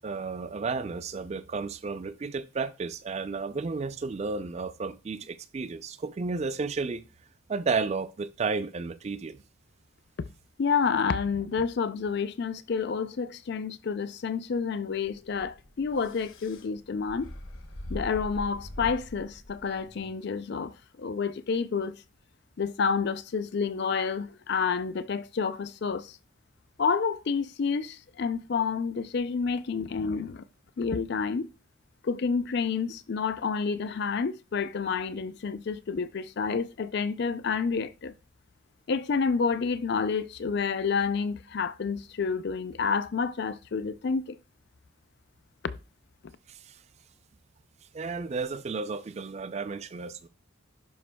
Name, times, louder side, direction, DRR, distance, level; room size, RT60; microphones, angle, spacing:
voice 1, 0.0-7.1 7.5-9.4 46.5-46.8 47.9-50.3, right 4 dB, 30° right, 0.3 m, -32 dB
voice 2, 10.6-17.3 17.9-22.0 22.6-26.2 26.8-30.4 30.8-31.5 32.0-38.1 38.9-44.4, left 5 dB, 55° left, 0.4 m, -29 dB
sound 1, 15.0-20.1, left 1 dB, 75° left, 1.0 m, -42 dB
11.0 x 5.0 x 2.2 m
head